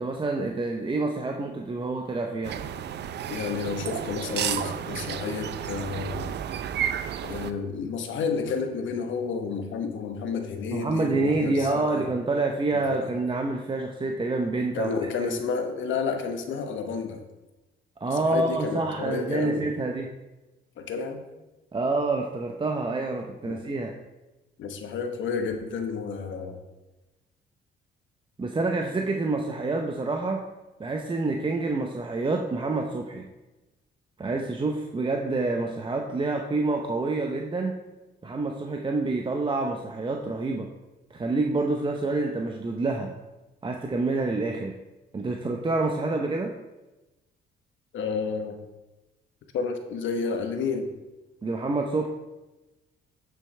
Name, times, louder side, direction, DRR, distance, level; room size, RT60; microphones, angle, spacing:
voice 1, 0.0-2.6 10.7-14.9 18.0-20.1 21.7-23.9 28.4-30.4 30.8-33.3 34.2-37.8 38.2-40.7 41.1-43.1 43.6-44.8 45.1-46.5 51.4-52.1, right 3 dB, 25° right, 2 dB, 0.7 m, -27 dB
sound 1, 2.4-7.5, right 9 dB, 60° right, 0.5 m, -32 dB
voice 2, 3.3-6.3 7.2-12.1 12.7-13.1 14.7-17.2 18.1-19.7 20.8-21.3 23.5-23.6 24.6-26.6 47.9-48.6 49.5-50.9, left 5 dB, 75° left, 6 dB, 1.1 m, -31 dB
8.9 x 7.1 x 3.2 m, 1.1 s
cardioid pair, 90°, 20 cm